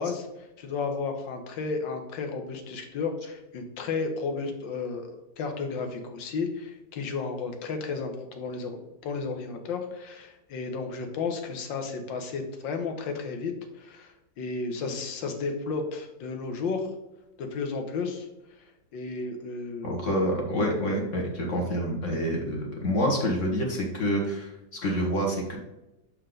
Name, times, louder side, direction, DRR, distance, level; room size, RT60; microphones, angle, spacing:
voice 1, 0.0-8.8 9.0-16.9 17.4-18.3 18.9-20.0 21.6-21.7, left 4 dB, 75° left, 5 dB, 1.7 m, -33 dB
voice 2, 19.8-25.6, equal, 45° left, 0 dB, 1.4 m, -27 dB
6.7 x 4.5 x 3.8 m, 0.97 s
omnidirectional pair, 2.1 m